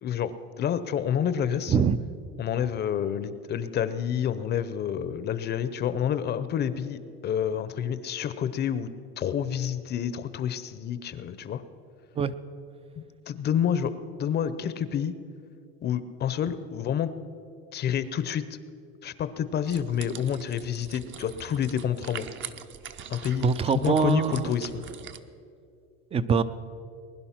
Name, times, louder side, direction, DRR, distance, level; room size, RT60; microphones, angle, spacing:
voice 1, 0.0-1.8 2.4-11.6 13.0-15.2 15.8-17.1 17.7-18.4 19.0-22.3 23.1-23.5 23.7-24.8, left 9 dB, 30° left, 13 dB, 0.7 m, -29 dB
sound 1, 19.7-25.2, right 9 dB, 40° right, 0.8 m, -43 dB
voice 2, 23.4-24.5 26.1-26.4, right 6 dB, 20° right, 14 dB, 0.4 m, -23 dB
21.0 x 11.0 x 5.8 m, 2.5 s
supercardioid pair, 140°, 32 cm